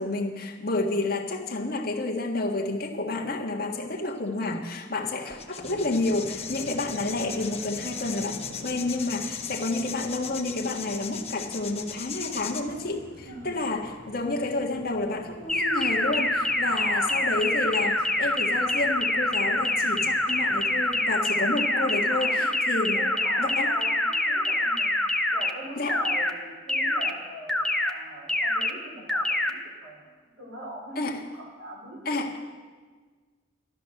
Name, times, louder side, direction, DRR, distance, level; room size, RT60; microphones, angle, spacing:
voice 1, 0.0-23.0 23.4-23.7 25.8-26.0 31.0-31.2 32.1-32.3, left 2 dB, 55° left, 0 dB, 1.6 m, -30 dB
sound 1, 4.4-4.5 5.3-12.6, left 7 dB, 35° left, 0.9 m, -38 dB
sound 2, 5.6-21.0, equal, 65° right, 3.9 m, -47 dB
voice 2, 13.2-13.6 16.7-17.3 21.7-22.4 22.9-24.9 25.3-32.2, equal, 85° right, -2 dB, 4.8 m, -41 dB
sound 3, 15.5-25.5 25.9-26.3 26.7-27.1 27.5-27.9 28.3-28.7 29.1-29.5, left 1 dB, 5° left, 0.7 m, -25 dB
12.5 x 12.5 x 6.5 m, 1.5 s
head